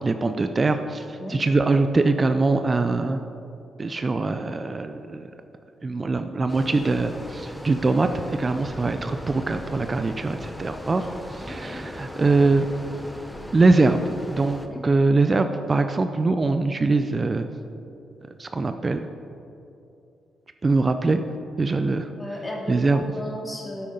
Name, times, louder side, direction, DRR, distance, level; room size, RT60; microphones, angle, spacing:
voice 1, 0.0-3.2 3.8-5.3 5.8-11.0 11.3-12.7 13.5-17.5 18.4-19.1 20.6-21.2 21.6-22.1 22.7-23.0, right 3 dB, 35° right, 8 dB, 0.5 m, -22 dB
sound 1, 6.5-14.7, equal, 5° left, 0.8 m, -38 dB
voice 2, 11.4-11.8 14.7-14.8 22.2-23.9, left 1 dB, 25° left, -1 dB, 2.2 m, -35 dB
9.8 x 8.2 x 3.9 m, 2.7 s
supercardioid pair, 60°, 0 cm